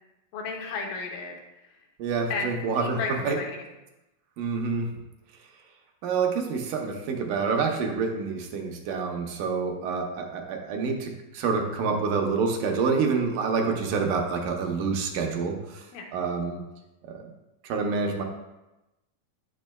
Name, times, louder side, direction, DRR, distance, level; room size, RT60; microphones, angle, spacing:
voice 1, 0.3-1.3 2.3-2.5 2.8-3.6 15.9-16.1, left 4 dB, 80° left, 1 dB, 2.4 m, -33 dB
voice 2, 2.0-3.0 3.2-3.4 4.4-4.9 6.0-15.8 16.1-16.6 17.1-17.2 17.6-18.2, right 5 dB, 75° right, 2 dB, 2.1 m, -27 dB
9.4 x 6.2 x 2.2 m, 0.99 s
omnidirectional pair, 3.9 m